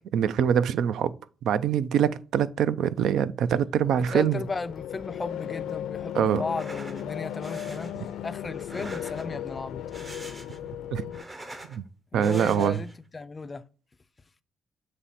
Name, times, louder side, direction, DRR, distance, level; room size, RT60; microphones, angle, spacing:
voice 1, 0.1-1.1 1.4-4.4 6.1-6.4 10.9-11.0 11.7-11.8 12.1-12.8, right 9 dB, 70° right, 0.4 m, -24 dB
sound 1, 3.8-11.2, left 10 dB, 80° left, 0.5 m, -36 dB
voice 2, 4.1-8.0 8.2-9.8 12.1-13.6, left 3 dB, 20° left, 0.3 m, -35 dB
sound 2, 6.4-7.0 7.4-7.9 8.6-9.4 9.8-10.7 11.0-11.8 12.2-13.0, right 1 dB, 15° right, 0.7 m, -44 dB
7.3 x 3.2 x 4.1 m
cardioid pair, 180°, 0 cm